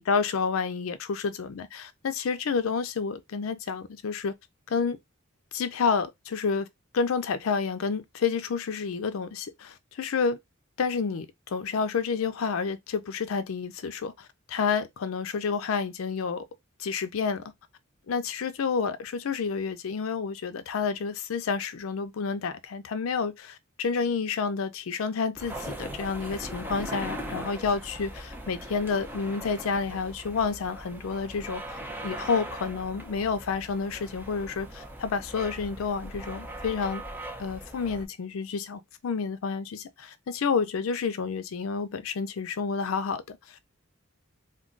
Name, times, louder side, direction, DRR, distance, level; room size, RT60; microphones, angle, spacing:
voice 1, 0.0-4.3 4.7-5.0 5.5-6.7 6.9-10.4 10.8-16.4 16.8-17.4 18.1-37.0 37.4-43.7, left 5 dB, 85° left, 0.4 m, -29 dB
sound 1, 25.4-38.1, right 1 dB, 10° right, 0.6 m, -40 dB
2.2 x 2.2 x 3.7 m
head